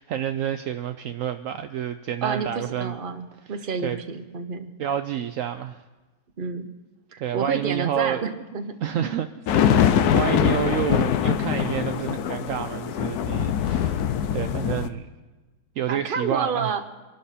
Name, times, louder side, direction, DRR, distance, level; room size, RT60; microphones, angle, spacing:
voice 1, 0.0-2.9 3.8-4.0 4.8-5.8 7.2-8.2 8.8-9.3 9.5-14.0 14.3-15.1 15.8-16.7, right 10 dB, 75° right, 8 dB, 0.7 m, -29 dB
voice 2, 2.2-4.7 6.4-6.7 7.1-9.1 9.7-10.0 15.9-16.8, right 5 dB, 35° right, 7 dB, 1.0 m, -30 dB
sound 1, 9.5-14.9, left 9 dB, 65° left, 1.1 m, -23 dB
23.5 x 12.0 x 4.3 m, 1.3 s
omnidirectional pair, 2.0 m